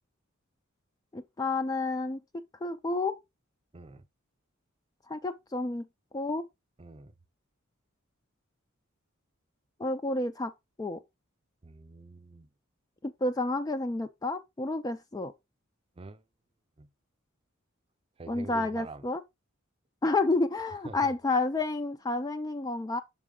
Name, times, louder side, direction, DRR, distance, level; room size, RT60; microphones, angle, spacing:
voice 1, 1.1-2.2 2.6-3.2 5.1-5.9 6.1-6.5 9.8-10.5 10.8-11.0 13.0-15.3 18.3-19.2 20.0-23.0, left 2 dB, 20° left, 0.3 m, -30 dB
voice 2, 3.7-4.0 6.8-7.1 11.6-12.5 16.0-16.2 16.8-16.9 18.2-19.0 20.8-21.1, right 3 dB, 25° right, 0.6 m, -45 dB
5.9 x 4.5 x 3.7 m
head